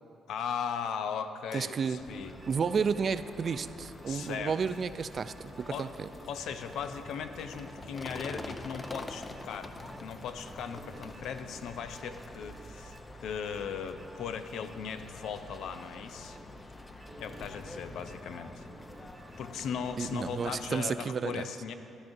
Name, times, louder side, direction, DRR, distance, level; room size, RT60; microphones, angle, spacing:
voice 1, 0.3-2.4 4.1-4.6 5.7-5.9 6.3-16.4 17.2-18.6 19.4-21.7, left 7 dB, 80° left, 9 dB, 0.5 m, -38 dB
voice 2, 1.5-2.0 2.5-6.1 20.0-21.5, right 6 dB, 45° right, 13 dB, 0.3 m, -32 dB
sound 1, 2.0-20.7, left 2 dB, 25° left, 0.6 m, -46 dB
sound 2, 2.1-21.0, right 3 dB, 30° right, 0.7 m, -56 dB
sound 3, 4.6-12.1, left 1 dB, 55° left, 2.1 m, -61 dB
14.0 x 12.0 x 2.6 m, 2.8 s
cardioid pair, 90°, 0 cm